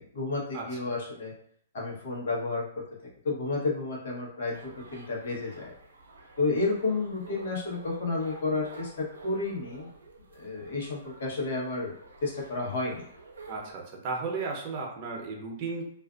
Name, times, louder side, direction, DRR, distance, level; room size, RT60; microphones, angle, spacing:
voice 1, 0.0-1.3 1.7-2.8 3.2-5.7 6.4-9.9 10.3-11.9 12.2-13.1, left 3 dB, 70° left, -3 dB, 1.0 m, -31 dB
sound 1, 4.5-13.7, right 3 dB, 90° right, 0.6 m, -50 dB
voice 2, 13.5-15.9, right 4 dB, 40° right, 0 dB, 0.7 m, -34 dB
2.5 x 2.4 x 2.4 m, 0.65 s
hypercardioid pair, 140°, 0 cm